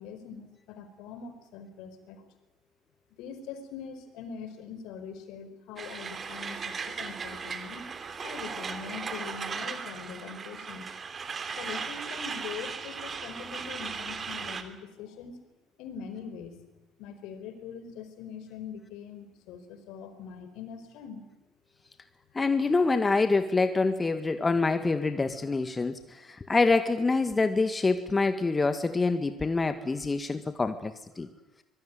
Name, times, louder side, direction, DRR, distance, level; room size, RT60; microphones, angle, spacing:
voice 1, 0.0-2.2 3.2-7.9 8.2-10.9 11.5-15.4 15.8-16.6 17.0-21.2, left 6 dB, 60° left, 10 dB, 4.7 m, -42 dB
Truck, 5.8-14.6, right 5 dB, 30° right, 3.3 m, -37 dB
voice 2, 22.4-31.3, left 3 dB, 20° left, 9 dB, 1.9 m, -26 dB
25.0 x 22.5 x 9.6 m, 1.0 s
hypercardioid pair, 65°, 0 cm